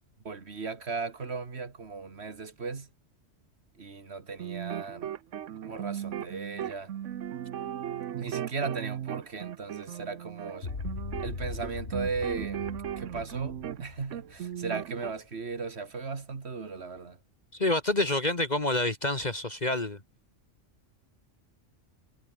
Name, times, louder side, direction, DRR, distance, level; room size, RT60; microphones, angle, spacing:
voice 1, 0.2-2.9 3.8-5.1 5.6-6.9 8.2-10.7 11.2-17.2, right 4 dB, 60° right, 2.2 m, -37 dB
sound 1, 4.3-13.8 14.1-15.1, right 10 dB, 75° right, 1.2 m, -37 dB
sound 2, 10.6-15.0, left 4 dB, 60° left, 2.6 m, -39 dB
voice 2, 17.5-20.0, left 2 dB, 35° left, 1.9 m, -27 dB
omnidirectional pair, 1.3 m